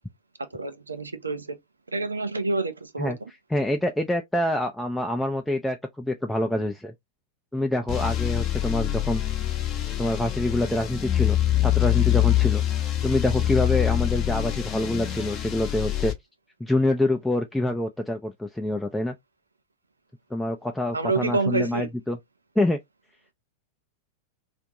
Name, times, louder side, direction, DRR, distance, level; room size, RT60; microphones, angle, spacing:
voice 1, 0.5-1.6 1.9-3.3 20.9-21.9, right 3 dB, 80° right, 0.5 m, -28 dB
voice 2, 3.5-6.9 7.5-9.2 10.0-12.6 13.0-16.1 16.6-19.2 20.3-22.2 22.6-22.8, left 1 dB, 5° left, 0.4 m, -26 dB
sound 1, 7.9-16.1, left 13 dB, 35° left, 0.7 m, -25 dB
2.5 x 2.5 x 2.9 m
figure-of-eight pair, 90°, 0 cm